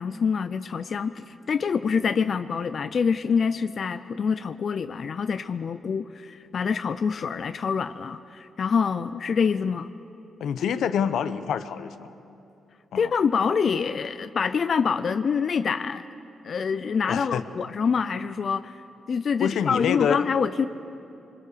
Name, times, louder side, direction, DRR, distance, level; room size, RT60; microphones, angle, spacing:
voice 1, 0.0-9.9 13.0-16.1 16.4-18.8 19.1-20.7, left 6 dB, 50° left, 11 dB, 0.5 m, -26 dB
voice 2, 10.4-12.1 12.9-13.1 17.1-17.4 19.4-20.2, left 8 dB, 75° left, 11 dB, 1.0 m, -26 dB
24.0 x 23.5 x 6.9 m, 2.7 s
cardioid pair, 110°, 0 cm